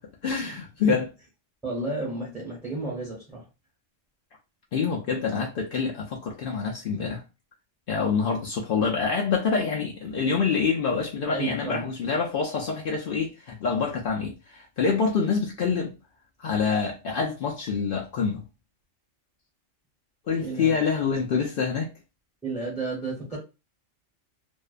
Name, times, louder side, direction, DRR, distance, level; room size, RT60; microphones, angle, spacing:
voice 1, 0.2-1.1 4.7-7.2 7.9-15.9 16.4-18.4 20.3-21.9, left 5 dB, 65° left, 0.6 m, -26 dB
voice 2, 1.6-3.5 11.3-11.9 20.4-20.7 22.4-23.4, right 2 dB, ahead, 0.7 m, -32 dB
2.5 x 2.2 x 2.4 m
omnidirectional pair, 1.3 m